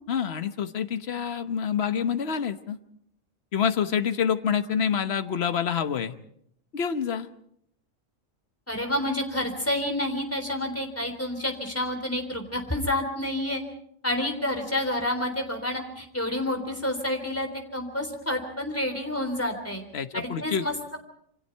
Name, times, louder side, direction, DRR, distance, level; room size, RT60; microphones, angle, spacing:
voice 1, 0.1-2.8 3.5-6.1 6.7-7.3 19.9-20.7, left 7 dB, 55° left, 10 dB, 1.3 m, -27 dB
voice 2, 8.7-13.6 14.0-19.8 20.1-20.7, left 1 dB, 10° left, 5 dB, 3.6 m, -29 dB
27.5 x 24.5 x 4.6 m, 0.71 s
omnidirectional pair, 1.4 m